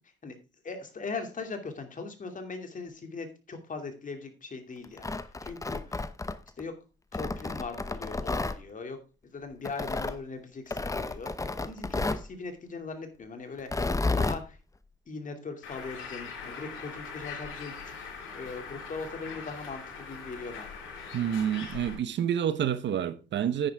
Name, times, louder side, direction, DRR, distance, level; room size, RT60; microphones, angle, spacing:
voice 1, 0.6-6.0 6.6-6.8 7.1-9.0 9.3-14.6 15.1-20.8, left 4 dB, 40° left, 2.6 m, -40 dB
Tearing, 4.8-6.6 7.1-8.6 9.7-10.2 10.7-12.3 13.6-14.4, left 3 dB, 15° left, 0.8 m, -31 dB
Bird, 15.6-21.9, left 5 dB, 85° left, 5.5 m, -42 dB
voice 2, 21.1-23.7, right 9 dB, 65° right, 1.1 m, -28 dB
9.7 x 9.6 x 3.5 m
cardioid pair, 90°, 20 cm